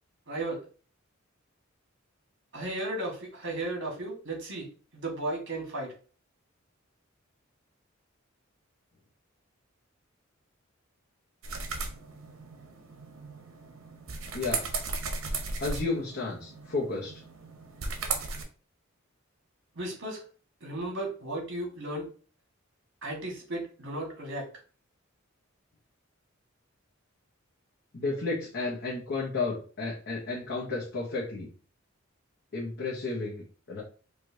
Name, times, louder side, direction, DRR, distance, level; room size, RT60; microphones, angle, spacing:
voice 1, 0.3-0.6 2.5-5.9 19.7-20.2 20.6-22.1 23.0-24.5, right 1 dB, 65° right, 0 dB, 1.5 m, -35 dB
sound 1, 11.4-18.4, right 4 dB, 85° right, 0.8 m, -36 dB
voice 2, 14.3-14.7 15.6-17.2 27.9-31.5 32.5-33.8, left 3 dB, 60° left, -4 dB, 0.9 m, -32 dB
4.8 x 2.5 x 2.7 m, 0.38 s
head